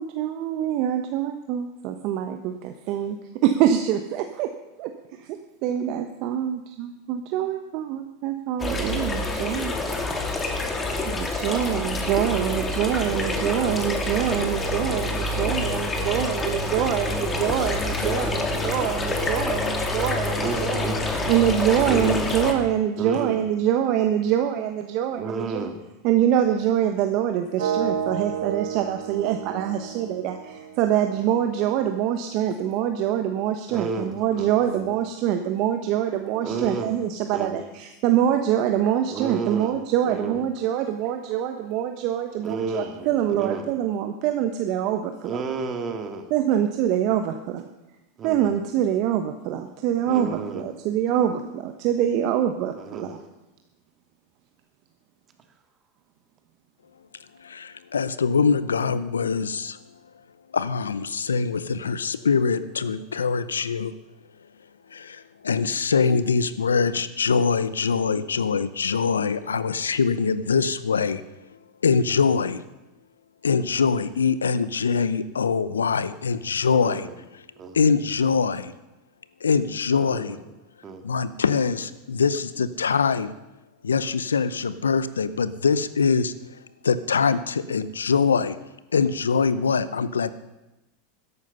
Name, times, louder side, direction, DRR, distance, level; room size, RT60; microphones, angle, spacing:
voice 1, 0.0-3.2 3.4-4.5 4.8-9.7 11.0-20.9 21.3-25.7 26.0-45.4 46.3-47.6 48.2-53.2, right 10 dB, 55° right, 7 dB, 1.0 m, -25 dB
sound 1, 8.6-22.5, left 2 dB, 20° left, 2.4 m, -27 dB
voice 2, 18.0-18.7 20.4-21.3 21.9-22.3 23.0-23.3 25.2-25.8 33.7-34.9 36.4-36.9 37.3-37.6 39.1-39.7 40.0-40.4 42.4-43.7 45.2-46.3 48.2-48.5 50.1-50.6 52.8-53.2 76.7-77.1 77.6-77.8 79.9-80.4 80.8-81.0, right 4 dB, 30° right, 6 dB, 2.2 m, -32 dB
sound 2, 27.6-31.5, right 7 dB, 75° right, 1.4 m, -31 dB
voice 3, 57.4-59.8 60.5-63.9 64.9-71.2 71.8-72.6 73.4-77.1 77.7-78.7 79.4-80.4 81.0-83.3 83.8-86.3 86.8-88.6 88.9-90.3, left 5 dB, 90° left, 15 dB, 0.7 m, -23 dB
13.5 x 11.5 x 5.5 m, 0.98 s
hypercardioid pair, 95°, 0 cm